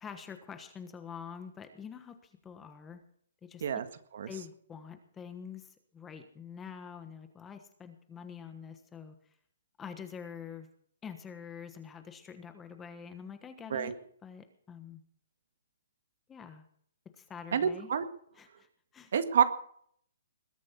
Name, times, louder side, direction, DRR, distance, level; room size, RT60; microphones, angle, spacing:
voice 1, 0.0-3.0 3.4-3.8 4.3-9.1 9.8-10.7 11.0-13.9 14.2-15.0 16.3-16.6 17.2-17.9 18.4-18.7 18.9-19.1, left 7 dB, 10° left, 8 dB, 1.3 m, -46 dB
voice 2, 17.5-18.1 19.1-19.4, right 8 dB, 55° right, 10 dB, 1.7 m, -27 dB
20.5 x 8.6 x 5.8 m, 0.62 s
hypercardioid pair, 165°, 0 cm